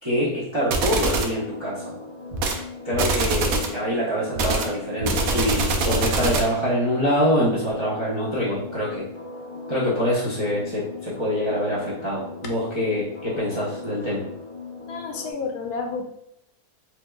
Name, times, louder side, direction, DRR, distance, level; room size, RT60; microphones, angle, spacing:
voice 1, 0.0-1.9 2.8-9.1 9.7-14.2, equal, 30° right, -7 dB, 0.5 m, -25 dB
sound 1, 0.7-1.4 2.3-2.6 2.9-3.8 4.4-6.6, right 3 dB, 70° right, 1.0 m, -24 dB
sound 2, 1.0-15.3, left 3 dB, 50° left, 0.7 m, -39 dB
voice 2, 14.8-16.0, left 4 dB, 75° left, 3 dB, 1.1 m, -30 dB
4.3 x 2.4 x 2.2 m, 0.77 s
omnidirectional pair, 1.7 m